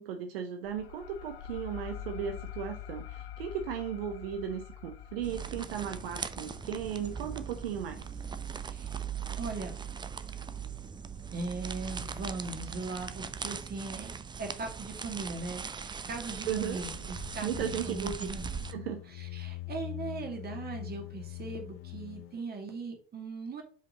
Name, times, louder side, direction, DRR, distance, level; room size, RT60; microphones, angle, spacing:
voice 1, 0.0-8.1 16.5-16.8 17.4-18.1 18.7-19.0, right 8 dB, 70° right, 6 dB, 1.0 m, -36 dB
sound 1, 0.6-9.9, left 10 dB, 70° left, 0.8 m, -46 dB
sound 2, 5.2-18.7, right 6 dB, 15° right, 0.6 m, -40 dB
voice 2, 9.4-9.8 11.3-18.4 19.1-23.6, right 3 dB, 30° right, 4 dB, 2.3 m, -39 dB
sound 3, 16.4-22.4, left 18 dB, 45° left, 0.5 m, -43 dB
5.3 x 5.2 x 5.9 m, 0.43 s
figure-of-eight pair, 70°, 31 cm